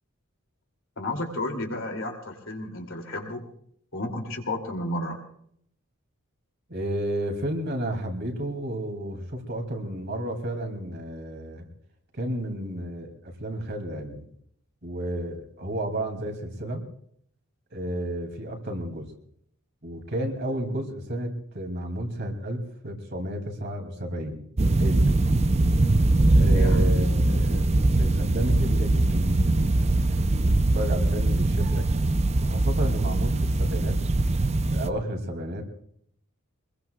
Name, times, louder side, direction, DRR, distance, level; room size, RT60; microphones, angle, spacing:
voice 1, 1.0-3.5 3.9-5.2 26.4-26.8, left 1 dB, 65° left, 3 dB, 2.8 m, -32 dB
voice 2, 6.7-11.7 12.1-14.3 14.8-16.8 17.7-19.1 19.8-24.4 24.8-25.1 26.3-31.9 32.4-34.0 34.7-35.6, right 1 dB, 50° right, 3 dB, 2.7 m, -32 dB
sound 1, 24.6-34.9, right 2 dB, 30° right, 0.6 m, -22 dB
24.5 x 21.5 x 2.4 m, 0.67 s
head